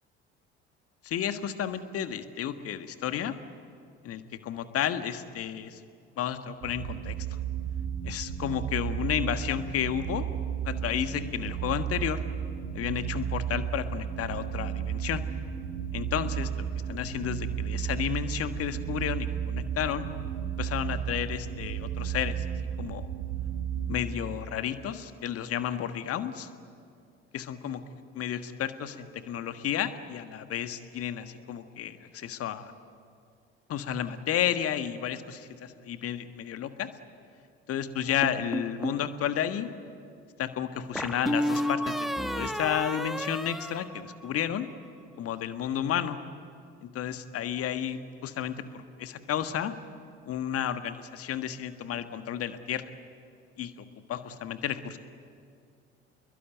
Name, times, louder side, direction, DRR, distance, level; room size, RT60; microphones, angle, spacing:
voice 1, 1.0-3.3 4.0-5.8 6.2-7.4 8.0-10.3 10.6-12.2 12.7-15.2 15.9-20.0 20.5-22.4 22.8-23.1 23.9-26.5 27.3-27.8 28.1-32.7 33.7-36.9 37.7-39.7 40.4-44.7 45.2-46.2 46.8-49.7 50.3-52.9 53.6-55.0, left 9 dB, 45° left, 10 dB, 1.6 m, -32 dB
sound 1, 6.6-24.0, right 9 dB, 55° right, 2.0 m, -33 dB
sound 2, 38.2-39.1 41.0-44.6, equal, ahead, 1.2 m, -31 dB
29.0 x 22.0 x 9.3 m, 2.3 s
figure-of-eight pair, 55°, 33 cm